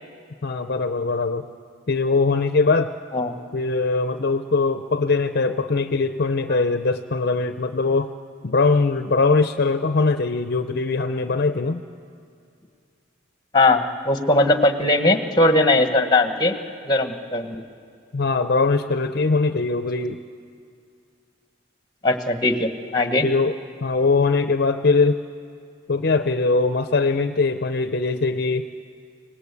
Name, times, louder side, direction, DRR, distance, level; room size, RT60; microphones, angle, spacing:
voice 1, 0.4-1.5 1.9-2.9 3.5-8.1 8.4-11.8 18.1-20.2 23.2-25.2 25.9-28.7, left 3 dB, 55° left, 9 dB, 0.6 m, -21 dB
voice 2, 13.5-16.5 16.8-17.6 22.0-23.3, left 2 dB, 20° left, 7 dB, 1.3 m, -19 dB
25.5 x 18.5 x 8.3 m, 2.4 s
head